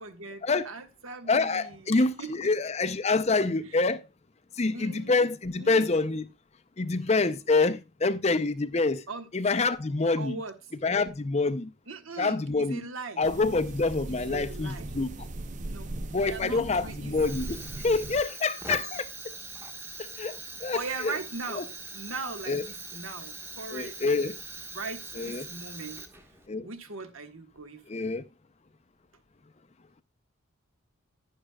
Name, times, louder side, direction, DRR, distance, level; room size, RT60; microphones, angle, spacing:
voice 1, 0.0-2.3 4.7-5.3 5.6-5.9 9.1-9.3 10.2-10.5 11.9-13.2 14.1-14.9 15.6-17.1 20.7-24.3 24.7-26.0 26.6-28.1, right 3 dB, 75° right, 1.5 m, -40 dB
voice 2, 1.3-4.1 4.6-6.3 6.8-9.0 9.3-10.4 10.8-11.7 12.2-12.8 13.2-15.2 16.1-19.1 20.0-20.8 21.0-21.1 21.5-21.6 22.5-22.7 23.7-24.4 25.2-25.4 26.5-26.7 27.9-28.2, left 3 dB, 30° left, 0.5 m, -26 dB
sound 1, 13.2-18.2, right 2 dB, 35° right, 0.6 m, -39 dB
Fire, 17.1-26.5, right 3 dB, 10° right, 1.1 m, -42 dB
11.0 x 10.0 x 2.3 m
head